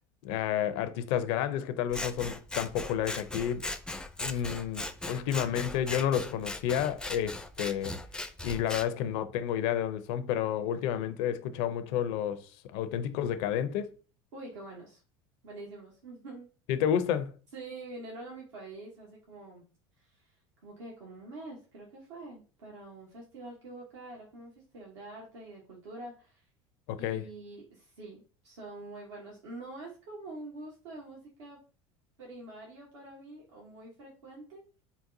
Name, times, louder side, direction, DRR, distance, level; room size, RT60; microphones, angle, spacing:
voice 1, 0.2-3.7 4.2-8.0 8.4-13.9 16.7-17.3 26.9-27.2, left 9 dB, 70° left, 0.5 m, -30 dB
Scissors, 1.9-8.9, left 2 dB, 5° left, 0.4 m, -38 dB
voice 2, 14.3-15.0 15.4-16.5 17.5-19.6 20.0-20.4 20.6-26.4 27.0-31.6 32.2-34.6, right 2 dB, 85° right, 1.1 m, -46 dB
3.9 x 2.2 x 2.6 m
hypercardioid pair, 80°, 15 cm